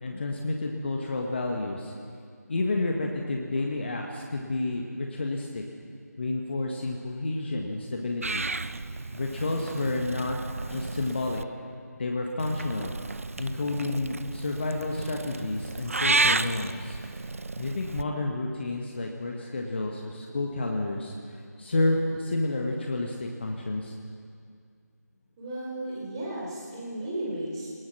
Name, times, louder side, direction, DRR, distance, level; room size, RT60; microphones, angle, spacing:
voice 1, 0.0-1.9 2.5-5.6 6.2-8.4 9.1-11.4 12.0-12.9 13.4-17.0 17.6-21.1 21.6-23.9, left 2 dB, 40° left, 1 dB, 1.7 m, -30 dB
Purr / Meow, 8.2-11.4 12.4-18.0, right 3 dB, 50° right, 0.6 m, -32 dB
voice 2, 25.4-27.7, right 1 dB, 15° right, -5 dB, 4.5 m, -34 dB
24.5 x 19.5 x 6.2 m, 2.2 s
figure-of-eight pair, 160°, 9 cm